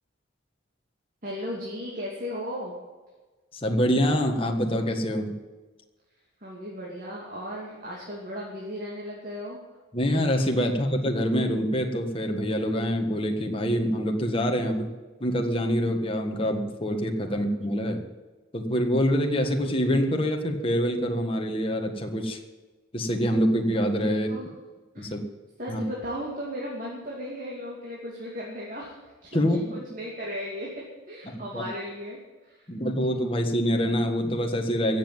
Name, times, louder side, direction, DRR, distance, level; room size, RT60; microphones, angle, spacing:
voice 1, 1.2-2.7 6.4-9.6 17.2-17.4 24.1-24.5 24.9-25.1 25.6-32.7, equal, 40° right, -4 dB, 2.8 m, -36 dB
voice 2, 3.6-5.3 9.9-14.9 15.2-18.0 18.5-22.4 22.9-24.3 25.0-25.2 25.7-25.8 29.3-29.6 31.5-31.6 32.7-35.0, equal, 25° left, 3 dB, 1.6 m, -25 dB
16.0 x 7.5 x 9.2 m, 1.3 s
head